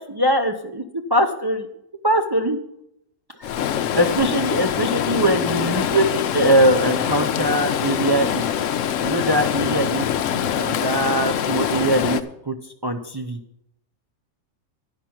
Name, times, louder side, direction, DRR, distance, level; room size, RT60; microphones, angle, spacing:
voice 1, 0.0-0.8 1.1-1.7 2.0-2.6 3.9-8.6 9.0-10.1 10.3-12.2 12.5-12.6 12.8-13.4, right 1 dB, 40° right, 4 dB, 0.3 m, -21 dB
Stream, 3.4-12.2, left 9 dB, 65° left, 0.9 m, -24 dB
10.5 x 5.8 x 7.7 m, 0.79 s
omnidirectional pair, 1.5 m